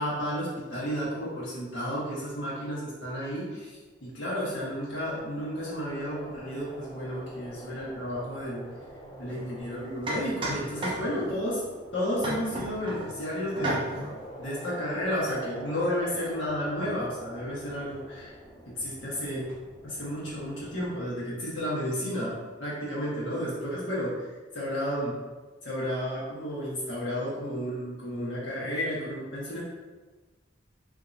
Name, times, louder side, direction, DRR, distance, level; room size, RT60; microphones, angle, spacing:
voice 1, 0.0-3.7 4.0-8.6 9.2-11.6 11.9-13.8 14.4-18.3 18.7-19.5 19.8-24.1 24.5-25.1 25.6-29.6, equal, 80° left, -7 dB, 1.4 m, -32 dB
sound 1, 4.0-21.0, right 1 dB, 20° left, 0.4 m, -45 dB
sound 2, 9.3-9.4 10.1-11.4 12.2-13.1 13.6-14.2, right 1 dB, 30° right, 0.6 m, -32 dB
3.6 x 2.8 x 2.6 m, 1.2 s
head